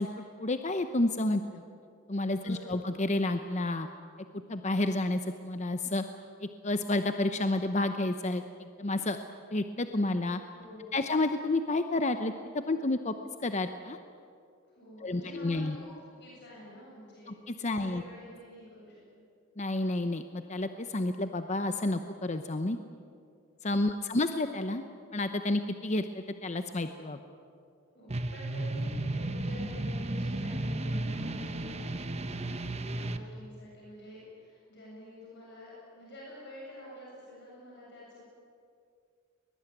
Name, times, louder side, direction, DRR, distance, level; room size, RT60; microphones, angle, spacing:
voice 1, 0.0-1.6 2.1-3.9 4.5-6.0 6.4-9.2 9.5-10.4 10.9-12.3 12.7-13.1 13.4-14.0 15.0-15.8 17.3-18.0 19.6-22.8 23.6-24.8 25.1-27.2, left 2 dB, 35° left, 8 dB, 0.9 m, -30 dB
voice 2, 2.4-2.8 10.5-11.1 14.7-17.3 17.7-19.1 23.7-24.1 27.9-38.3, left 1 dB, 55° left, -5 dB, 7.9 m, -49 dB
sound 1, 28.1-33.2, right 2 dB, 30° right, 1.0 m, -34 dB
22.0 x 21.5 x 9.2 m, 2.3 s
head